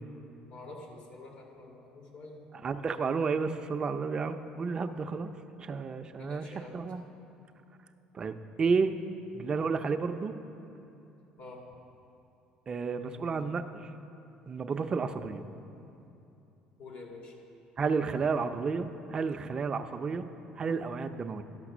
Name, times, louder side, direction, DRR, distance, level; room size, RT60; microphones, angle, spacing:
voice 1, 0.5-2.4 6.2-6.8 11.4-11.6 16.8-17.4, left 2 dB, 65° left, 0 dB, 2.0 m, -47 dB
voice 2, 2.6-5.3 5.6-6.5 6.7-7.0 8.1-9.0 9.3-10.4 12.7-13.8 14.5-15.4 17.8-20.3 20.6-21.4, right 5 dB, 30° right, 8 dB, 0.5 m, -31 dB
12.5 x 5.8 x 6.1 m, 2.8 s
cardioid pair, 115°, 3 cm